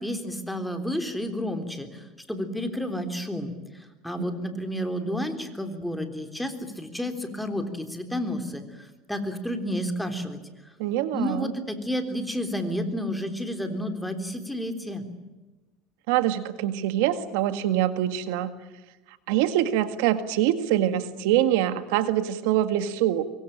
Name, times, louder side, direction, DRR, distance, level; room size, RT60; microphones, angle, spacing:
voice 1, 0.0-3.5 4.0-10.4 11.1-15.0, equal, ahead, 6 dB, 3.7 m, -31 dB
voice 2, 10.8-11.5 16.1-18.5 19.3-23.2, right 12 dB, 80° right, 10 dB, 1.9 m, -24 dB
25.5 x 23.5 x 8.9 m, 1.1 s
supercardioid pair, 125°, 0 cm